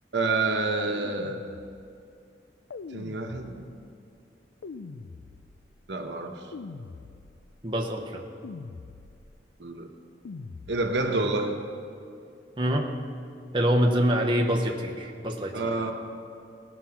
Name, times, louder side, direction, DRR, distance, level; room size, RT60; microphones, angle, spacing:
voice 1, 0.1-1.4 2.9-3.6 5.9-6.5 9.6-9.9 10.7-11.5 15.5-15.9, right 3 dB, 80° right, 4 dB, 1.0 m, -28 dB
sound 1, 0.8-2.0 2.7-3.9 4.6-5.7 6.5-7.5 8.4-9.4 10.2-11.1, left 4 dB, 90° left, 0.4 m, -43 dB
voice 2, 7.6-8.3 12.6-12.9 13.5-15.7, equal, 25° right, 1 dB, 0.8 m, -25 dB
17.5 x 6.0 x 5.7 m, 2.5 s
head